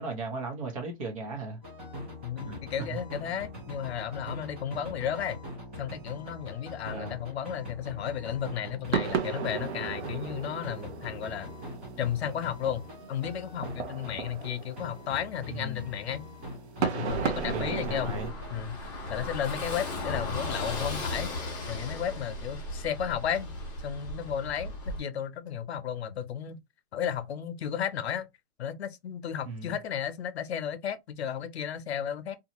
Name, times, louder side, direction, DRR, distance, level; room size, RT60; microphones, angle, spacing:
voice 1, 0.0-1.6 2.4-2.6 2.9-3.0 6.9-7.2 15.5-15.9 17.5-18.3 29.4-29.8, right 3 dB, 30° right, 0.8 m, -37 dB
sound 1, 1.6-14.5 14.8-18.6, left 2 dB, 10° right, 0.5 m, -44 dB
voice 2, 2.2-5.4 5.8-11.5 12.0-12.8 13.1-16.3 16.8-18.2 18.5-18.8 19.1-23.5 23.8-26.6 26.9-28.3 28.6-32.4, left 9 dB, 75° left, 0.7 m, -33 dB
sound 2, 8.9-18.3, right 7 dB, 85° right, 0.8 m, -35 dB
Car passing by / Engine, 17.1-25.0, left 2 dB, 20° left, 0.8 m, -36 dB
2.7 x 2.3 x 2.8 m
hypercardioid pair, 175°, 32 cm